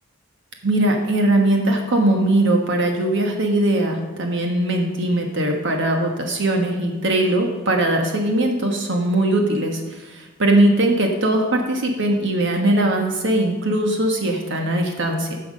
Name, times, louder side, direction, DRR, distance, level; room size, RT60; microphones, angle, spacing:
voice 1, 0.6-15.4, right 1 dB, 60° right, 2 dB, 1.4 m, -20 dB
15.5 x 5.8 x 5.4 m, 1.2 s
head